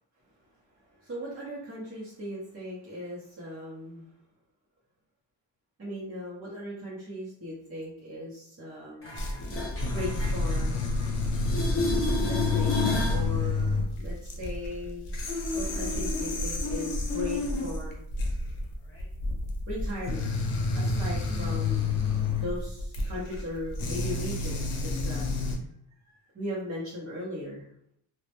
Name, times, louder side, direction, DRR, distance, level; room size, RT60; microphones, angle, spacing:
voice 1, 0.8-4.1 5.8-9.3 9.9-10.8 12.3-15.1 15.5-18.0 19.7-20.3 20.7-25.3 26.0-27.7, left 1 dB, 30° right, -7 dB, 0.7 m, -38 dB
sound 1, 9.0-11.1 11.3-13.3 19.0-19.1, left 2 dB, 30° left, 0.7 m, -31 dB
sound 2, 9.2-25.6, left 3 dB, 90° left, 0.6 m, -29 dB
2.1 x 2.1 x 2.8 m, 0.70 s
wide cardioid pair, 100°, 48 cm